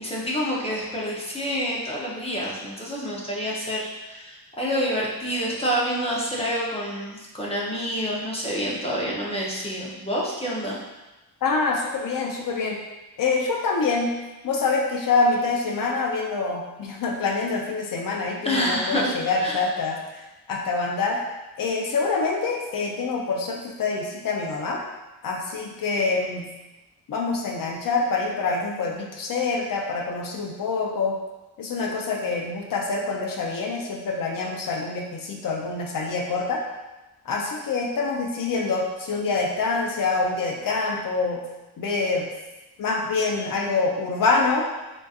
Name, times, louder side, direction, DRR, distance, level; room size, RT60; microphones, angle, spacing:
voice 1, 0.0-10.8 18.4-19.1 19.4-19.6, equal, 15° left, -5 dB, 0.6 m, -27 dB
voice 2, 11.4-12.8 13.2-14.1 14.4-21.2 21.6-24.8 25.2-26.5 27.1-31.2 31.6-36.6 37.3-41.5 41.8-42.3 42.8-44.7, left 4 dB, 55° left, 0 dB, 0.6 m, -26 dB
3.9 x 2.5 x 2.4 m, 1.1 s
wide cardioid pair, 135°, 40 cm